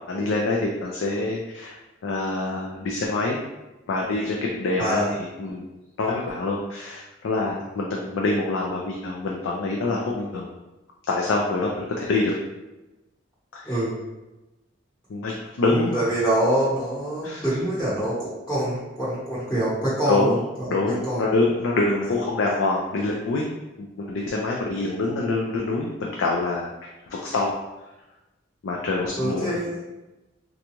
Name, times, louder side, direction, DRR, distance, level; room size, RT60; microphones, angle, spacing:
voice 1, 0.1-1.8 2.0-3.4 3.9-5.1 5.4-10.5 11.1-12.3 13.5-13.8 15.1-16.0 17.2-17.4 20.1-20.4 20.7-23.5 23.8-26.7 27.1-27.5 28.6-29.6, left 2 dB, 85° left, -1 dB, 0.4 m, -25 dB
voice 2, 4.8-5.1 13.6-13.9 15.7-21.2 29.2-29.8, right 1 dB, 10° left, -10 dB, 0.9 m, -25 dB
3.8 x 2.3 x 2.9 m, 1.1 s
head